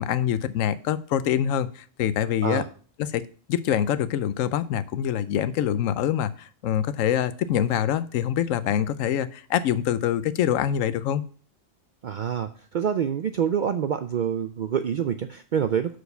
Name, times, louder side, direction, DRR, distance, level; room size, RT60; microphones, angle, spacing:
voice 1, 0.0-2.6 3.0-3.2 3.5-11.2, left 10 dB, 90° left, 14 dB, 1.0 m, -25 dB
voice 2, 12.0-16.0, right 8 dB, 70° right, 8 dB, 0.4 m, -26 dB
6.4 x 4.8 x 6.6 m, 0.43 s
omnidirectional pair, 1.3 m